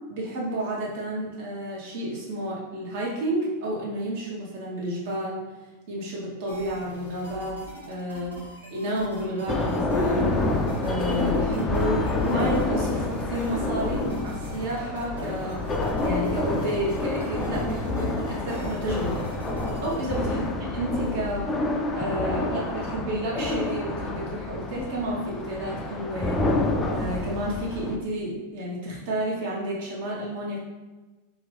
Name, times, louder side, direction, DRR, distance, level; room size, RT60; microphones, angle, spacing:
voice 1, 0.1-5.4 5.9-7.6 7.9-15.6 16.0-19.3 19.8-21.5 21.9-26.4 26.9-30.6, right 1 dB, 50° right, -4 dB, 1.0 m, -31 dB
sound 1, 6.5-20.0, right 1 dB, 80° right, 0.8 m, -43 dB
sound 2, 9.5-28.0, left 2 dB, 20° left, 0.3 m, -28 dB
2.8 x 2.5 x 3.4 m, 1.2 s
figure-of-eight pair, 90°, 0 cm